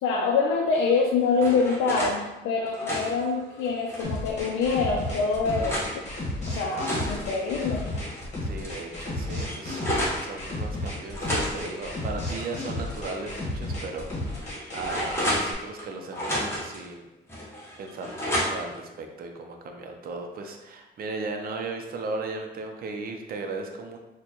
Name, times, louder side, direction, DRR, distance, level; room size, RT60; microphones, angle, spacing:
voice 1, 0.0-5.8 6.5-7.8, left 4 dB, 80° left, -1 dB, 0.5 m, -25 dB
sound 1, 0.9-2.2 2.6-4.2 4.8-5.9 6.5-8.2 8.6-8.7 9.0-10.2 11.1-13.0 13.3-13.4 14.0-15.8 16.1-16.8 17.3-18.8, equal, 10° left, 1.1 m, -32 dB
sound 2, 4.0-15.5, left 1 dB, 35° left, 1.2 m, -33 dB
voice 2, 8.4-9.8 10.2-17.1 17.8-24.0, right 3 dB, 50° right, 4 dB, 0.5 m, -36 dB
4.2 x 2.2 x 2.9 m, 1.0 s
cardioid pair, 90°, 20 cm